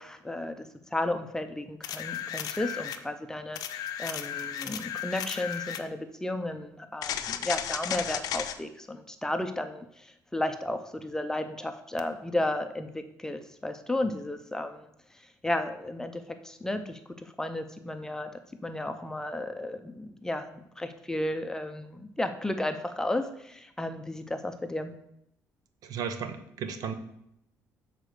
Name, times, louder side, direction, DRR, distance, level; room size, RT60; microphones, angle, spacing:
voice 1, 0.0-14.9 15.4-18.3 18.6-25.0, left 1 dB, 10° left, 7 dB, 0.5 m, -33 dB
sound 1, 1.8-3.0 3.6-5.9 7.0-8.6 12.0-12.1, left 10 dB, 70° left, 0.6 m, -34 dB
voice 2, 25.8-26.9, right 6 dB, 70° right, 9 dB, 0.8 m, -34 dB
6.5 x 4.1 x 6.5 m, 0.77 s
cardioid pair, 125°, 7 cm